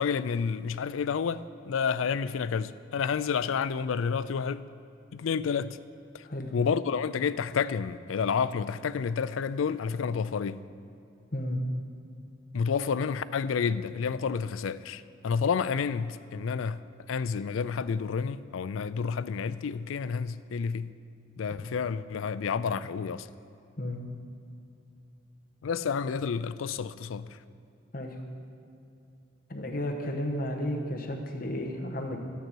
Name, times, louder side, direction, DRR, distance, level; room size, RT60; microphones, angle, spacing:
voice 1, 0.0-4.6 5.1-5.8 6.1-6.3 6.5-10.6 12.5-21.0 21.4-23.3 25.6-27.4, left 6 dB, 85° left, 0.4 m, -30 dB
voice 2, 29.5-32.2, left 1 dB, 45° left, 1.1 m, -33 dB
13.0 x 9.3 x 4.6 m
head